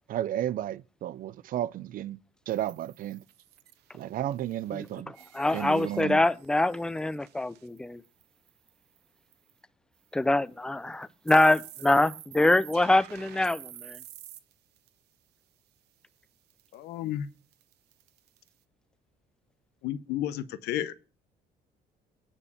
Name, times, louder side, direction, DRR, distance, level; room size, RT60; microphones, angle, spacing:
voice 1, 0.1-2.2 2.5-3.2 3.9-5.1 5.5-6.2, right 12 dB, 55° right, 0.4 m, -33 dB
sound 1, 2.5-8.7 9.0-9.1 9.3-9.5 10.2-10.3 10.9-14.9 16.5-16.8 17.5-18.5, right 13 dB, 80° right, 0.8 m, -49 dB
voice 2, 5.3-8.0 10.1-14.0, left 2 dB, 5° left, 0.4 m, -24 dB
voice 3, 16.7-17.3 19.8-20.9, left 12 dB, 80° left, 0.7 m, -32 dB
9.8 x 4.4 x 7.1 m
cardioid pair, 110°, 17 cm